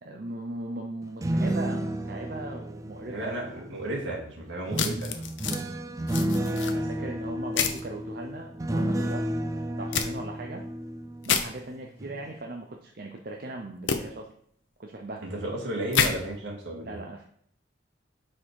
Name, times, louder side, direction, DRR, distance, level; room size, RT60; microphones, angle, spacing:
voice 1, 0.0-3.3 4.9-5.2 6.1-9.3 9.8-10.6 11.3-14.3 14.8-15.2 16.7-17.3, right 2 dB, 50° right, 2 dB, 0.6 m, -39 dB
sound 1, 1.0-3.9 4.7-11.6 12.0-12.3, right 1 dB, 15° right, 0.3 m, -31 dB
voice 2, 3.1-5.1 6.7-7.1 15.2-17.0, right 1 dB, 70° right, -3 dB, 2.2 m, -34 dB
sound 2, 4.8-5.6 6.1-6.7 7.6-7.8 9.9-10.1 11.2-11.4 13.9-14.0 15.9-16.1, left 7 dB, 80° left, 0.7 m, -27 dB
6.1 x 4.3 x 4.7 m, 0.65 s
head